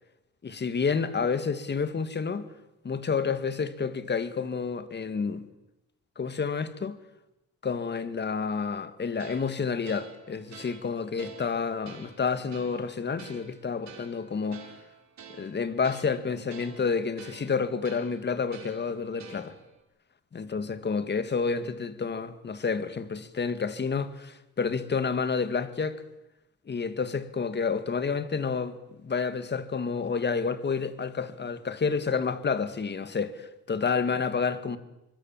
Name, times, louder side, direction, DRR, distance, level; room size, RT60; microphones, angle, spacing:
voice 1, 0.4-2.5 2.8-5.5 6.2-7.0 7.6-14.6 15.4-19.5 20.3-26.0 26.7-28.8 29.0-34.8, left 5 dB, 30° left, 2.1 m, -29 dB
sound 1, 9.2-19.8, right 6 dB, 55° right, 4.4 m, -49 dB
25.0 x 24.5 x 7.4 m
cardioid pair, 110°, 34 cm